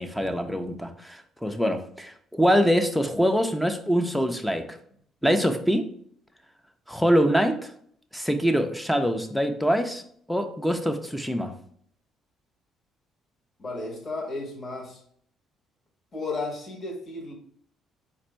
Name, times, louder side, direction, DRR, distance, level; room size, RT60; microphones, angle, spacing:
voice 1, 0.0-4.8 5.2-5.9 6.9-7.7 8.1-10.0 10.3-11.5, equal, 5° left, 6 dB, 0.7 m, -24 dB
voice 2, 13.6-15.0 16.1-17.3, left 3 dB, 40° left, -2 dB, 1.4 m, -33 dB
4.2 x 2.6 x 4.3 m, 0.63 s
supercardioid pair, 65°, 0 cm